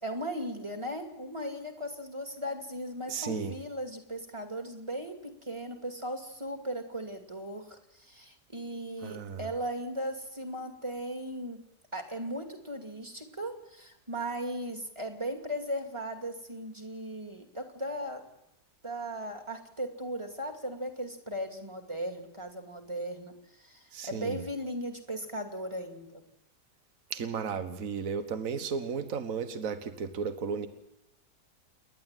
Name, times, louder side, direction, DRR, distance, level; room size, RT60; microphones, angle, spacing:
voice 1, 0.0-11.6 11.9-18.2 18.8-26.2, equal, 15° right, 4 dB, 2.6 m, -37 dB
voice 2, 3.1-3.5 9.0-9.4 23.9-24.4 27.1-30.7, right 6 dB, 55° right, 9 dB, 1.7 m, -34 dB
29.5 x 11.5 x 9.2 m, 0.87 s
omnidirectional pair, 1.7 m